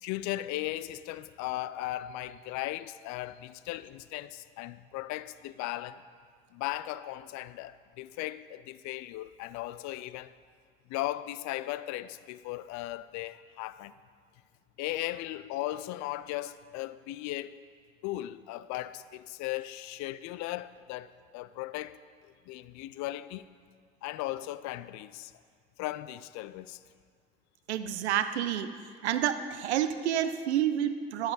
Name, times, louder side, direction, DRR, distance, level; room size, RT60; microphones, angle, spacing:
voice 1, 0.0-6.0 6.5-10.3 10.9-13.9 14.8-17.6 18.0-22.0 22.5-23.5 24.0-25.3 25.8-26.8, left 15 dB, 60° left, 0.5 m, -37 dB
voice 2, 27.7-28.7 29.0-31.3, right 10 dB, 85° right, 0.5 m, -29 dB
12.0 x 7.8 x 4.1 m
hypercardioid pair, 55°, 33 cm